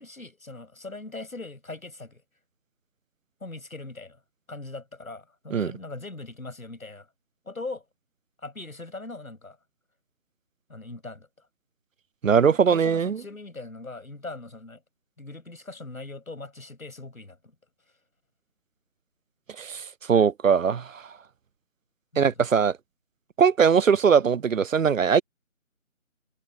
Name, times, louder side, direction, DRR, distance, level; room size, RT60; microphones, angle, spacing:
voice 1, 0.0-2.2 3.4-4.2 4.5-7.1 7.4-7.8 8.4-9.6 10.7-11.3 12.4-14.8 15.2-17.4 22.1-22.3, left 2 dB, 80° left, 7.9 m, -40 dB
voice 2, 12.2-13.2 19.6-19.8 20.1-21.0 22.2-22.7 23.4-25.2, right 6 dB, 70° right, 0.6 m, -20 dB
figure-of-eight pair, 170°, 41 cm